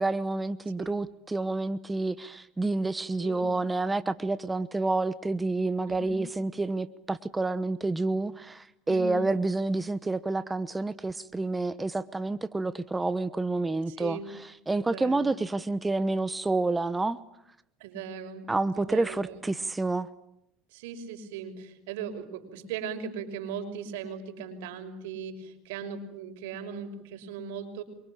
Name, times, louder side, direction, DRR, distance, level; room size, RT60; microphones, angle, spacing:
voice 1, 0.0-14.2 14.7-17.2 18.5-20.1, right 2 dB, 15° right, 14 dB, 1.1 m, -29 dB
voice 2, 3.2-3.5 5.9-6.2 8.9-9.3 13.9-14.3 14.8-15.3 17.8-18.5 18.7-19.4 20.7-27.8, right 6 dB, 80° right, 7 dB, 5.8 m, -38 dB
28.0 x 24.5 x 8.7 m, 0.79 s
supercardioid pair, 100°, 0 cm